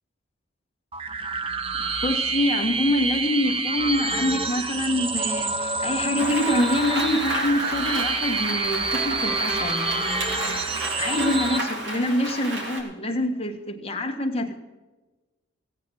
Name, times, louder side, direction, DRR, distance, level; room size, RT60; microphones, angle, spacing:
sound 1, 0.9-11.6, right 3 dB, 25° right, 0.6 m, -27 dB
voice 1, 1.8-10.2 10.9-14.6, left 1 dB, 30° left, 3 dB, 1.6 m, -26 dB
Rain, 6.1-12.8, right 1 dB, 60° right, 3.2 m, -32 dB
sound 2, 8.6-11.9, right 1 dB, 5° right, 2.3 m, -36 dB
16.5 x 9.1 x 6.3 m, 1.1 s
head